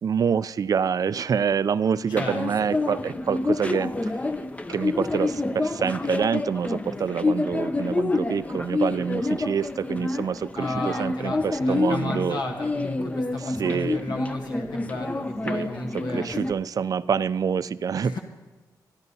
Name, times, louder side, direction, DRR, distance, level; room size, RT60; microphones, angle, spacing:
voice 1, 0.0-3.9 4.7-12.4 13.4-14.0 15.5-15.7 15.9-18.2, right 7 dB, 55° right, 16 dB, 0.4 m, -26 dB
voice 2, 2.1-2.4 10.6-16.4 18.0-18.2, left 2 dB, 85° left, 1 dB, 1.3 m, -33 dB
sound 1, 2.1-16.5, left 2 dB, 20° left, 0.5 m, -28 dB
23.0 x 10.5 x 2.8 m, 1.2 s
cardioid pair, 90°, 7 cm